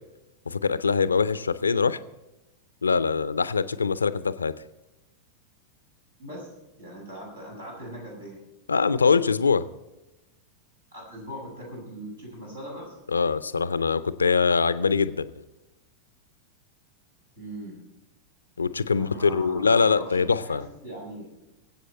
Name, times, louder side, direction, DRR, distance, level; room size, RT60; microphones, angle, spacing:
voice 1, 0.5-2.0 2.8-4.5 8.7-9.6 13.1-15.3 18.6-20.6, left 5 dB, 75° left, 15 dB, 0.5 m, -23 dB
voice 2, 6.2-8.4 10.9-13.0 17.4-17.8 18.9-21.3, equal, 75° right, -3 dB, 6.4 m, -40 dB
23.5 x 8.2 x 4.3 m, 1.0 s
figure-of-eight pair, 90°, 0 cm